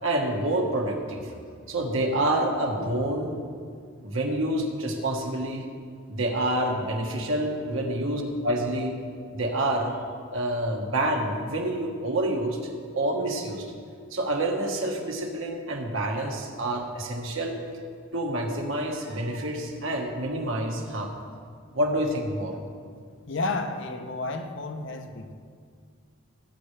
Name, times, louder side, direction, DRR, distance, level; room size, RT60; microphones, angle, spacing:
voice 1, 0.0-1.3 1.7-3.4 4.0-5.6 6.1-8.9 9.3-10.0 10.3-13.7 14.1-17.6 18.1-21.1 21.7-22.6, right 1 dB, 70° right, 1 dB, 1.5 m, -28 dB
voice 2, 23.3-25.3, left 3 dB, 60° left, 6 dB, 0.8 m, -31 dB
17.5 x 8.8 x 3.4 m, 2.1 s
head